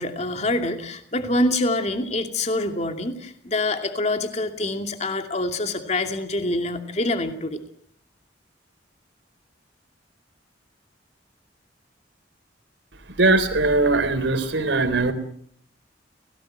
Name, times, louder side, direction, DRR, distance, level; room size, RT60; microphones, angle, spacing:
voice 1, 0.0-7.6, left 2 dB, 35° left, 6 dB, 2.7 m, -25 dB
voice 2, 13.1-15.1, right 2 dB, 75° right, 9 dB, 3.7 m, -20 dB
29.0 x 18.5 x 7.8 m, 0.64 s
head